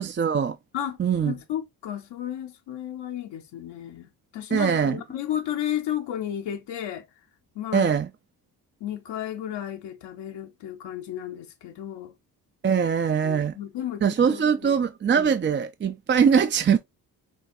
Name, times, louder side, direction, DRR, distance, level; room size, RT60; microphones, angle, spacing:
voice 1, 0.0-0.6 1.0-1.3 4.5-5.0 7.7-8.1 12.6-13.6 14.0-16.8, right 7 dB, 30° right, 0.4 m, -22 dB
voice 2, 1.2-7.0 7.6-7.9 8.8-12.1 13.2-14.0 14.3-14.7, left 11 dB, 80° left, 0.8 m, -33 dB
6.1 x 2.3 x 2.6 m
cardioid pair, 60°, 41 cm